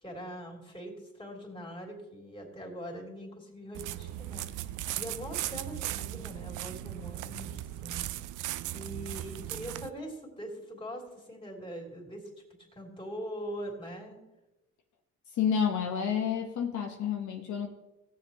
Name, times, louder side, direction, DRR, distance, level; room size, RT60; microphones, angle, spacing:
voice 1, 0.0-8.1 8.7-12.3 12.7-14.2, equal, 15° left, 0 dB, 3.1 m, -42 dB
sound 1, 3.7-9.9, right 14 dB, 85° right, 0.5 m, -37 dB
voice 2, 15.3-17.7, left 7 dB, 70° left, 3 dB, 1.0 m, -29 dB
17.0 x 7.4 x 3.0 m, 1.0 s
cardioid pair, 90°, 30 cm